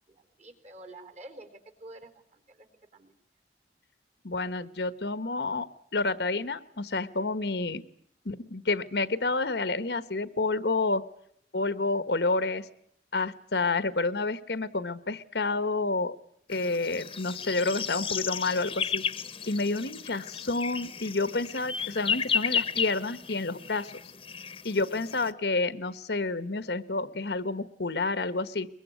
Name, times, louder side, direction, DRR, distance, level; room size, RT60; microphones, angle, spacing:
voice 1, 0.1-3.1, right 2 dB, 40° right, 9 dB, 3.7 m, -49 dB
voice 2, 4.2-7.8 8.2-11.0 11.5-12.7 13.1-16.2 16.5-19.0 19.5-23.9 24.6-28.7, left 3 dB, 65° left, 14 dB, 1.2 m, -29 dB
sound 1, 16.5-25.3, left 7 dB, 30° left, 1.2 m, -33 dB
23.0 x 22.0 x 9.5 m, 0.69 s
head